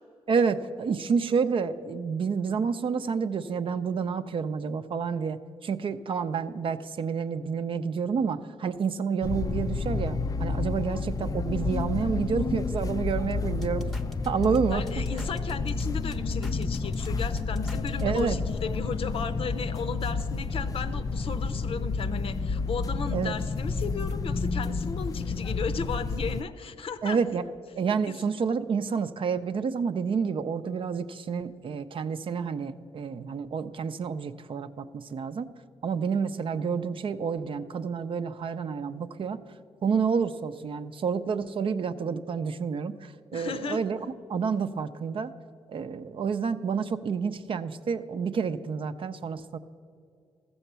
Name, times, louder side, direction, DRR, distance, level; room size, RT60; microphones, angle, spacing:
voice 1, 0.3-13.9 14.3-14.8 18.0-18.4 23.1-23.4 27.0-35.5 35.8-39.4 39.8-44.0 44.3-45.3 45.7-49.6, right 6 dB, 55° right, 11 dB, 0.5 m, -29 dB
sound 1, 9.2-26.4, left 4 dB, 35° left, 0.4 m, -30 dB
sound 2, 13.3-18.2, left 1 dB, ahead, 0.7 m, -41 dB
voice 2, 14.7-27.2 28.1-28.2 43.3-43.8, left 5 dB, 65° left, 10 dB, 0.7 m, -35 dB
14.0 x 7.1 x 6.7 m, 2.4 s
cardioid pair, 65°, 11 cm